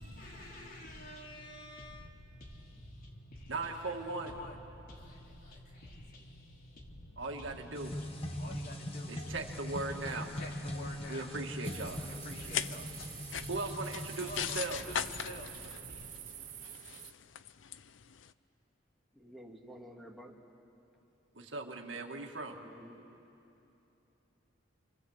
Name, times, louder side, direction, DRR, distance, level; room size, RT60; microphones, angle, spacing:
voice 1, 0.0-9.4 9.8-16.1, left 1 dB, 50° left, -1 dB, 3.6 m, -48 dB
voice 2, 3.5-4.3 7.2-7.9 9.1-10.3 11.1-12.0 13.5-14.8 21.3-22.6, right 3 dB, 75° right, 2 dB, 2.0 m, -38 dB
sound 1, 7.8-14.6, left 1 dB, 30° left, 1.7 m, -41 dB
sound 2, 11.6-17.1, right 10 dB, 45° right, 1.0 m, -48 dB
sound 3, 12.3-18.3, left 9 dB, 80° left, 0.6 m, -40 dB
voice 3, 19.1-20.4 21.9-22.1 22.5-23.0, equal, ahead, 1 dB, 2.2 m, -52 dB
29.0 x 25.0 x 8.1 m, 2.9 s
head